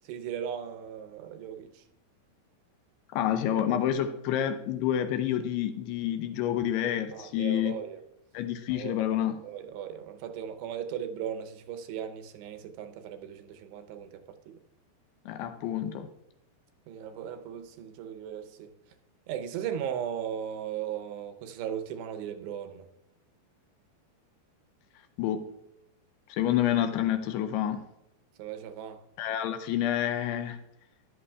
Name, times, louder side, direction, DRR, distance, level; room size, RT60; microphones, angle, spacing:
voice 1, 0.0-1.8 7.1-8.0 8.7-8.9 9.4-14.6 16.9-18.7 19.3-22.9 28.4-29.0, right 9 dB, 85° right, 2.9 m, -37 dB
voice 2, 3.1-7.8 8.3-9.4 15.3-16.1 25.2-25.5 26.3-27.8 29.2-30.6, left 11 dB, 80° left, 2.6 m, -28 dB
14.0 x 11.5 x 2.3 m
omnidirectional pair, 4.9 m